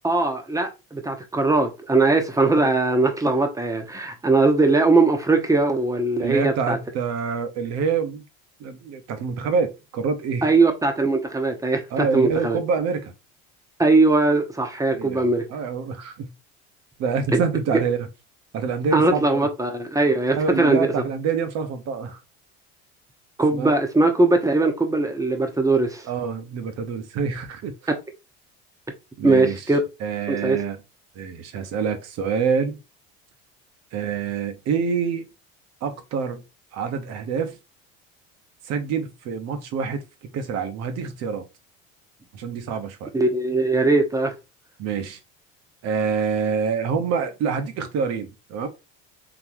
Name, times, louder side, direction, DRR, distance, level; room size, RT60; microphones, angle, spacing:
voice 1, 0.0-6.8 10.4-12.6 13.8-15.4 17.3-17.4 18.9-20.9 23.4-26.0 27.9-28.0 29.2-29.8 30.3-30.6 43.1-44.3, right 3 dB, 10° right, 0.9 m, -20 dB
voice 2, 6.2-8.2 8.6-10.5 11.9-13.1 14.9-16.3 17.0-18.1 18.5-19.5 20.4-22.2 23.5-23.7 26.0-27.7 29.2-29.6 30.0-30.8 31.1-32.8 33.9-35.3 35.8-36.4 36.7-37.6 38.6-40.0 40.3-41.4 42.3-43.1 44.8-45.2 45.8-48.7, right 6 dB, 55° right, 1.0 m, -26 dB
4.0 x 2.9 x 3.0 m
cardioid pair, 120°, 31 cm